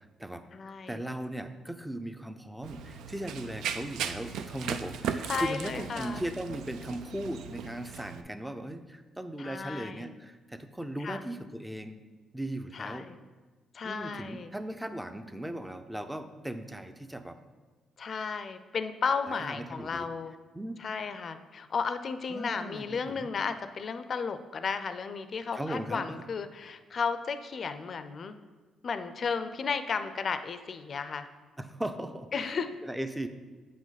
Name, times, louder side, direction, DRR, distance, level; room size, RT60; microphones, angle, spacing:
voice 1, 0.0-0.4 0.9-12.0 12.3-13.1 13.8-17.4 19.3-20.1 20.5-20.8 22.3-23.3 25.5-26.2 31.6-32.5 32.8-33.3, right 1 dB, 5° right, 9 dB, 0.5 m, -38 dB
voice 2, 0.5-1.0 5.2-6.2 9.4-10.1 11.0-11.2 12.7-13.2 13.7-14.5 18.0-20.4 20.8-28.4 28.8-31.3 32.3-32.7, left 5 dB, 50° left, 10 dB, 0.4 m, -34 dB
Run, 2.6-8.2, right 7 dB, 80° right, 0.4 m, -37 dB
8.1 x 5.0 x 4.0 m, 1.4 s
cardioid pair, 90°, 0 cm